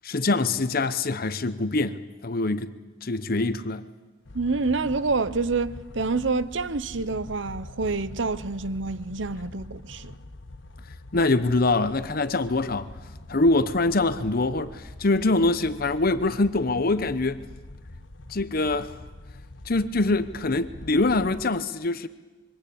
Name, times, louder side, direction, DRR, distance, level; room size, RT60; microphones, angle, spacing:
voice 1, 0.0-2.7 3.0-3.9 11.1-12.9 13.3-17.4 18.3-19.0 19.7-22.1, left 2 dB, 50° left, 0.9 m, -24 dB
sound 1, 4.3-21.5, left 1 dB, 90° left, 1.3 m, -44 dB
voice 2, 4.3-10.1, right 3 dB, 80° right, 0.9 m, -27 dB
26.0 x 24.5 x 8.7 m
head